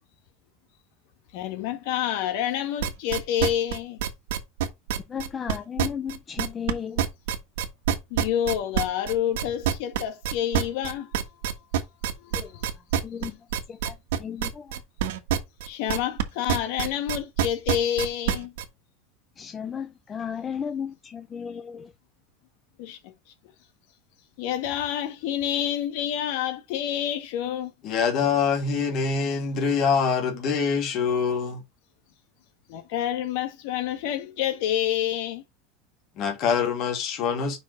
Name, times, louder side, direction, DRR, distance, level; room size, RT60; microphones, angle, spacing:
voice 1, 1.3-4.0 8.1-11.2 12.2-12.7 13.3-13.4 15.6-18.5 22.8-23.1 24.4-27.7 32.7-35.4, left 10 dB, 60° left, 1.7 m, -28 dB
sound 1, 2.8-6.7 7.0-16.2 16.5-18.6, right 9 dB, 90° right, 1.4 m, -25 dB
voice 2, 5.1-7.1 12.3-12.6 13.0-13.3 13.7-14.8 19.4-21.9, left 7 dB, 20° left, 0.5 m, -34 dB
voice 3, 27.8-31.6 36.2-37.6, left 6 dB, 40° left, 2.4 m, -24 dB
5.4 x 5.0 x 5.3 m
supercardioid pair, 155°, 0 cm